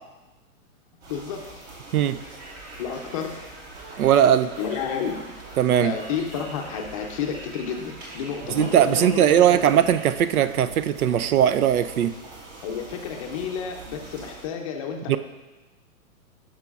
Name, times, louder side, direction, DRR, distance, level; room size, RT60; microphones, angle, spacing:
sound 1, 1.0-14.5, right 3 dB, 50° right, 2.3 m, -45 dB
voice 1, 1.1-1.4 2.8-3.4 4.6-5.3 5.8-9.7 12.6-15.2, left 6 dB, 25° left, 3 dB, 0.5 m, -31 dB
Conversation, 2.1-10.0, right 2 dB, 20° right, 0.7 m, -44 dB
voice 2, 4.0-4.5 5.6-5.9 8.5-12.1 15.1-15.2, right 10 dB, 85° right, 13 dB, 0.5 m, -19 dB
11.0 x 6.0 x 2.4 m, 1.1 s
hypercardioid pair, 140°, 43 cm